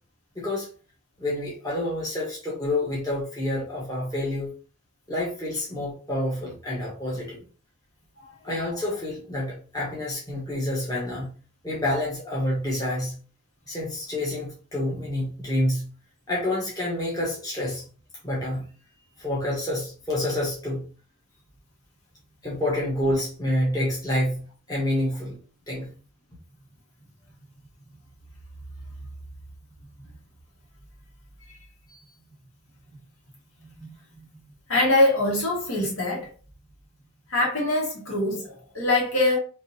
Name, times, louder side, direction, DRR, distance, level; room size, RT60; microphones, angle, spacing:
voice 1, 0.3-0.7 1.2-4.5 5.1-7.4 8.4-11.3 11.6-13.1 13.7-15.9 16.3-17.8 18.2-18.7 19.2-20.8 22.4-24.4 24.7-25.4 25.7-25.9, left 1 dB, 15° left, 1.1 m, -28 dB
voice 2, 34.7-36.3 37.3-39.4, left 2 dB, 70° left, 1.6 m, -23 dB
3.7 x 2.6 x 2.7 m
head